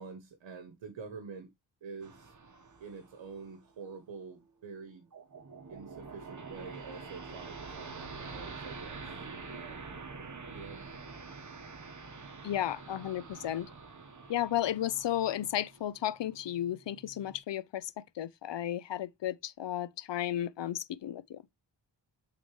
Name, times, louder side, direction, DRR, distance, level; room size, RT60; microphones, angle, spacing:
voice 1, 0.0-1.5 1.8-2.3 2.8-5.1 5.7-9.2 9.5-9.9 10.5-10.8, right 5 dB, 80° right, 1.1 m, -47 dB
sound 1, 2.0-4.0 5.1-17.4, right 4 dB, 40° right, 1.3 m, -46 dB
voice 2, 12.4-13.7 14.3-21.4, left 12 dB, 70° left, 0.7 m, -34 dB
8.3 x 3.9 x 3.2 m
cardioid pair, 60°, 44 cm